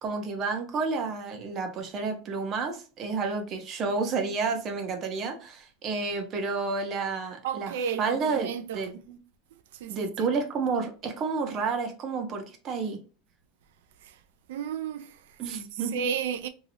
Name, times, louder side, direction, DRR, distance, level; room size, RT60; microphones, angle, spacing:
voice 1, 0.0-7.7 8.0-8.5 8.7-9.2 9.9-13.0 15.4-15.9, right 4 dB, 30° right, 0.7 m, -30 dB
voice 2, 7.4-9.0 9.5-10.3 14.0-14.2 14.5-16.5, right 7 dB, 85° right, 0.3 m, -34 dB
2.8 x 2.7 x 2.7 m
supercardioid pair, 160°, 0 cm